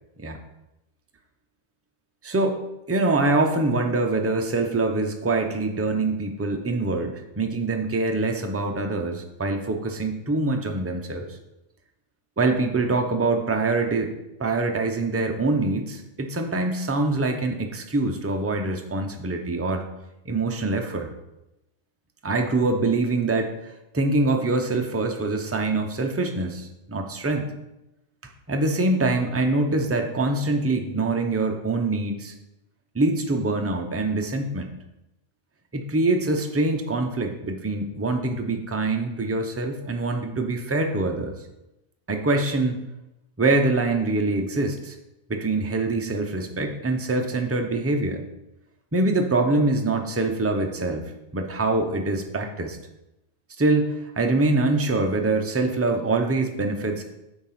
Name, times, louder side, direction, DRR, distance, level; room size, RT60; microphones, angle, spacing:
voice 1, 2.2-2.6 2.9-11.3 12.4-14.1 14.4-19.8 20.3-21.1 22.2-27.5 28.5-32.3 32.9-34.7 35.7-41.3 42.1-42.8 43.4-45.0 45.3-48.2 48.9-52.8 53.6-57.0, right 2 dB, 15° right, 3 dB, 0.5 m, -24 dB
8.7 x 3.6 x 5.7 m, 0.92 s
omnidirectional pair, 1.3 m